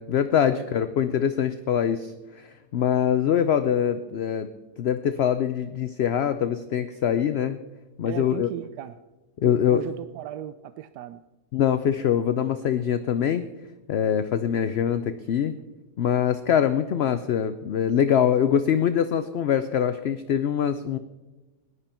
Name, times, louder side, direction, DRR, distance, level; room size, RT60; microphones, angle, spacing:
voice 1, 0.0-4.5 4.8-7.6 8.0-8.5 9.4-9.8 11.5-13.4 13.9-15.5 16.0-21.0, left 9 dB, 60° left, 11 dB, 0.6 m, -23 dB
voice 2, 8.0-9.0 9.4-11.2, right 12 dB, 85° right, 12 dB, 1.2 m, -36 dB
17.5 x 11.0 x 4.4 m, 1.1 s
omnidirectional pair, 1.7 m